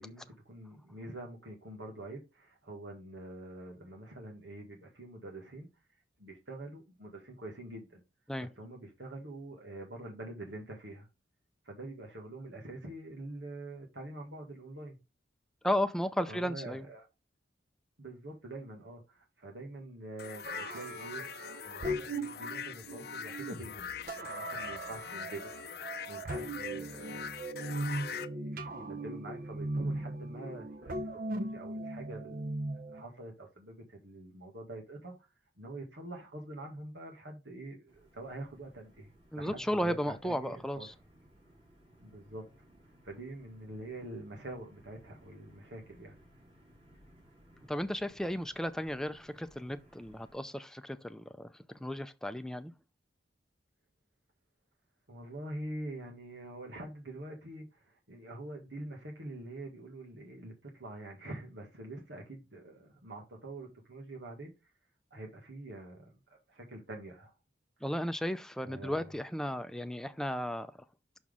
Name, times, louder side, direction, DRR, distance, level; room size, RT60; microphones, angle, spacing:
voice 1, 0.0-5.7 6.2-8.0 8.4-11.1 11.6-15.0 16.3-17.1 18.0-21.3 21.6-23.9 24.2-25.5 26.1-32.5 32.9-35.1 35.6-40.9 42.0-42.4 43.0-46.2 55.1-64.7 65.1-67.3 68.6-69.1, right 2 dB, 90° right, 1.9 m, -45 dB
voice 2, 15.6-16.9 39.3-40.9 47.7-52.7 67.8-70.7, equal, 5° left, 0.4 m, -34 dB
sound 1, 20.2-28.3, left 7 dB, 60° left, 0.5 m, -43 dB
sound 2, 20.4-33.0, right 1 dB, 50° right, 0.7 m, -39 dB
sound 3, 37.9-50.4, equal, 35° right, 3.3 m, -61 dB
6.1 x 5.9 x 3.7 m
head